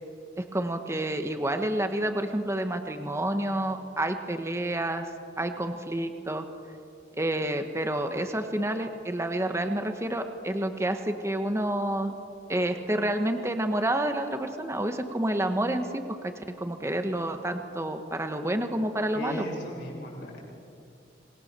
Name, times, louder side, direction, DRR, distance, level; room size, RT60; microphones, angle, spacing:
voice 1, 0.4-5.1 5.4-6.4 7.1-12.1 12.5-19.5, right 1 dB, 15° right, 6 dB, 1.3 m, -29 dB
voice 2, 19.1-20.4, left 1 dB, 70° left, -3 dB, 7.6 m, -37 dB
26.5 x 21.0 x 6.8 m, 2.4 s
head